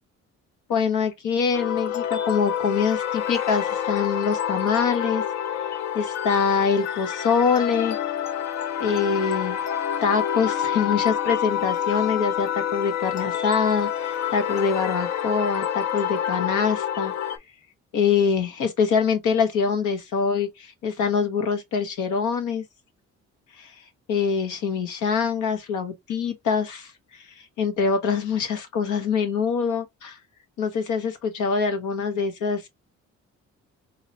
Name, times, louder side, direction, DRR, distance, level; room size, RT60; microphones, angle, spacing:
voice 1, 0.7-5.2 5.9-8.0 8.8-9.6 10.0-17.1 17.9-22.6 23.6-23.7 24.1-27.2 27.6-30.2 30.6-32.7, left 6 dB, 85° left, 1.4 m, -24 dB
sound 1, 1.5-17.4, left 9 dB, 65° left, 0.7 m, -27 dB
3.8 x 3.1 x 2.7 m
cardioid pair, 90°, 30 cm